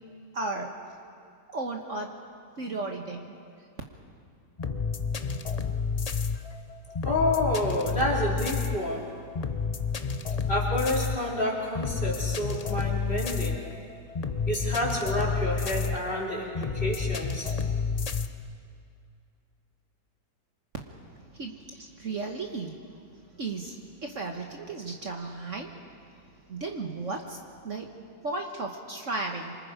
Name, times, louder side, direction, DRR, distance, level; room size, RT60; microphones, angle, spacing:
voice 1, 0.3-0.7 1.5-2.1 2.6-3.2 21.3-22.7 23.4-25.7 26.5-27.9 28.2-29.5, right 3 dB, 50° right, 2 dB, 1.5 m, -34 dB
sound 1, 4.6-18.3, left 5 dB, 80° left, 0.3 m, -30 dB
voice 2, 7.0-9.1 10.5-13.6 14.5-17.5, left 1 dB, 30° left, -3 dB, 3.8 m, -29 dB
27.5 x 25.0 x 5.0 m, 2.3 s
omnidirectional pair, 1.8 m